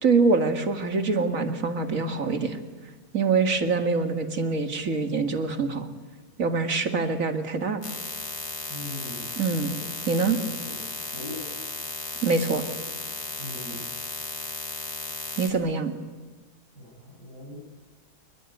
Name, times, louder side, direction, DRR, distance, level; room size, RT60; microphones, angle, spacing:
voice 1, 0.0-2.6 3.1-5.9 6.4-7.8 9.4-9.7 10.1-10.4 12.2-12.6 15.4-15.9, right 4 dB, 55° right, 7 dB, 2.5 m, -24 dB
sound 1, 7.8-15.5, left 4 dB, 75° left, 3.6 m, -35 dB
voice 2, 8.7-9.8 10.3-10.7 11.0-11.5 13.4-13.9 16.7-17.6, left 1 dB, 85° right, -2 dB, 6.3 m, -41 dB
27.5 x 22.0 x 9.4 m, 1.3 s
omnidirectional pair, 1.7 m